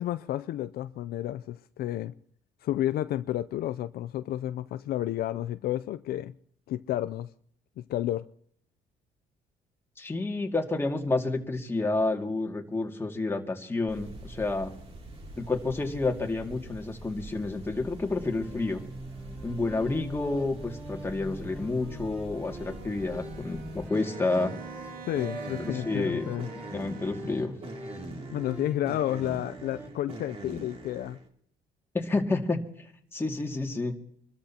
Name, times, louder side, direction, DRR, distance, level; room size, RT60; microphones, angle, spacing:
voice 1, 0.0-2.1 2.6-6.3 6.7-7.3 7.8-8.3 25.1-26.5 28.3-31.2, left 13 dB, 65° left, 0.5 m, -31 dB
voice 2, 10.0-14.7 15.4-18.8 19.4-24.5 25.6-26.3 26.7-27.5 31.9-33.9, left 3 dB, 15° left, 2.2 m, -30 dB
sound 1, 13.9-31.3, right 2 dB, 35° right, 2.8 m, -44 dB
sound 2, 18.0-29.9, right 1 dB, 5° right, 6.0 m, -43 dB
Bowed string instrument, 22.3-27.6, right 5 dB, 60° right, 1.4 m, -48 dB
26.5 x 13.5 x 2.9 m
cardioid pair, 110°, 17 cm